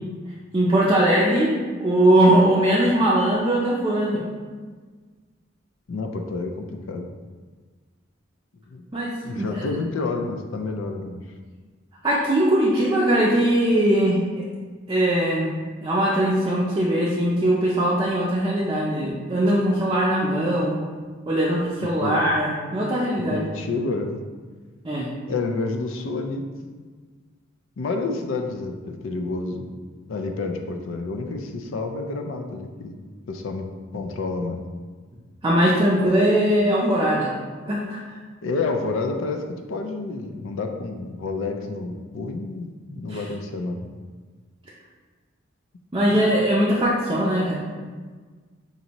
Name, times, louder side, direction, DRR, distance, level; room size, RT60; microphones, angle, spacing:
voice 1, 0.5-4.2 8.9-9.6 12.0-14.4 14.9-15.5 15.8-20.8 21.3-23.5 24.8-25.1 35.4-37.3 37.7-38.0 43.1-43.2 45.9-47.6, right 1 dB, 25° right, -6 dB, 0.5 m, -20 dB
voice 2, 5.9-7.1 8.7-8.8 9.2-11.2 21.8-22.3 23.3-24.2 25.3-26.4 26.8-26.9 27.8-29.7 30.1-33.0 33.3-34.6 38.4-43.9 46.0-46.2, left 3 dB, 70° left, 4 dB, 0.4 m, -29 dB
5.2 x 2.6 x 2.9 m, 1.5 s
head